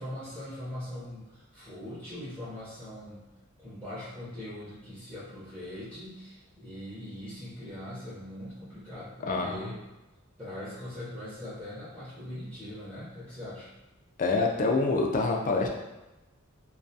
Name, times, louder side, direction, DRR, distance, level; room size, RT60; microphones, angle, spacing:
voice 1, 0.0-3.3 3.6-9.8 10.4-13.7, left 1 dB, 15° right, -11 dB, 0.6 m, -41 dB
voice 2, 9.3-9.7 14.2-15.7, left 3 dB, 40° left, 1 dB, 0.3 m, -26 dB
2.3 x 2.3 x 2.6 m, 1.0 s
head